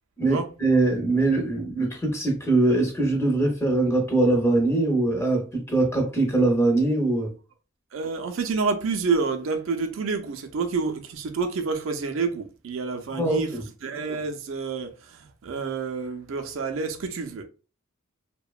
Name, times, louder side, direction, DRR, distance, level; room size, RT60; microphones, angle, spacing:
voice 1, 0.2-7.3 13.1-13.6, right 2 dB, 15° left, 0.7 m, -22 dB
voice 2, 7.9-17.4, right 4 dB, 75° right, 0.4 m, -28 dB
2.8 x 2.1 x 2.3 m
head